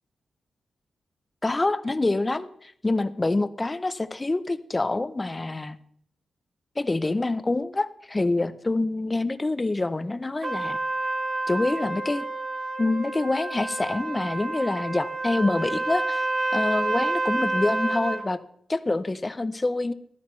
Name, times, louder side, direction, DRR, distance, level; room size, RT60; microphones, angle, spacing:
voice 1, 1.4-5.8 6.8-10.8 11.5-12.3 12.8-16.3 16.5-18.4 18.7-19.9, left 2 dB, 20° left, 13 dB, 0.6 m, -26 dB
Trumpet, 10.4-18.3, right 2 dB, 40° right, 1.3 m, -29 dB
14.5 x 12.0 x 3.2 m, 0.66 s
cardioid pair, 100°, 0 cm